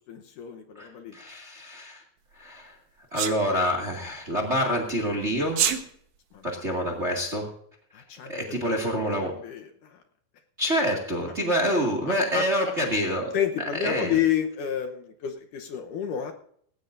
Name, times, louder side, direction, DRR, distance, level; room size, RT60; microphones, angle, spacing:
voice 1, 0.1-1.2 6.3-6.5 7.9-10.0 12.3-12.5 13.3-16.3, left 9 dB, 70° left, 4 dB, 2.4 m, -30 dB
voice 2, 0.8-2.0 2.3-2.7 3.1-5.6 6.4-7.5 8.2-9.3 10.6-13.3 13.8-14.2, equal, 25° right, 2 dB, 1.7 m, -27 dB
Sneeze, 3.2-3.4 5.5-5.8, right 9 dB, 65° right, 2.1 m, -24 dB
18.5 x 17.0 x 2.6 m, 0.64 s
omnidirectional pair, 4.2 m